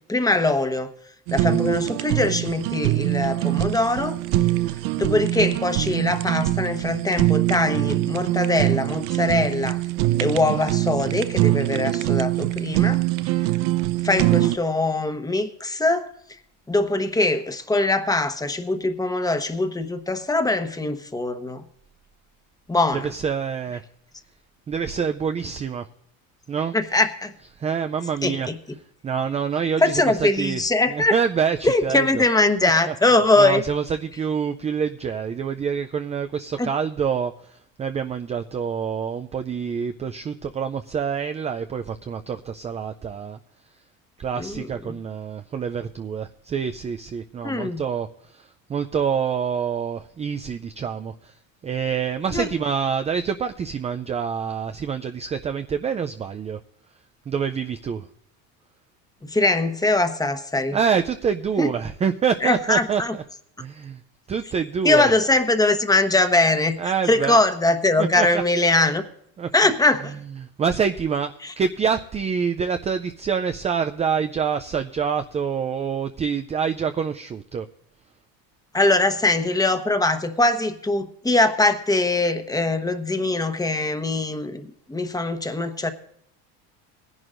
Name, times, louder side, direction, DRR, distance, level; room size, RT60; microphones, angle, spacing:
voice 1, 0.1-0.9 1.3-4.2 5.0-9.8 10.2-13.0 14.0-16.1 16.7-21.6 22.7-23.1 26.7-27.3 28.2-28.5 29.8-31.1 31.6-33.6 36.6-36.7 44.4-44.7 47.4-47.8 52.3-52.4 59.2-60.8 61.6-61.7 62.4-63.2 64.8-69.0 69.5-70.1 71.4-71.5 78.7-85.9, left 2 dB, 10° left, 8 dB, 1.1 m, -22 dB
Fire, 1.3-14.6, right 16 dB, 80° right, 0.7 m, -23 dB
voice 2, 22.9-23.8 24.7-25.9 26.5-26.7 27.6-28.5 29.0-30.6 30.9-32.2 32.6-32.9 33.4-43.4 44.2-51.3 51.6-56.6 57.3-58.1 60.7-63.0 63.6-64.0 64.3-65.1 66.8-67.4 68.0-68.4 69.4-69.5 70.4-77.7, right 6 dB, 20° right, 8 dB, 0.3 m, -26 dB
19.5 x 11.0 x 2.5 m, 0.68 s
supercardioid pair, 120°, 41 cm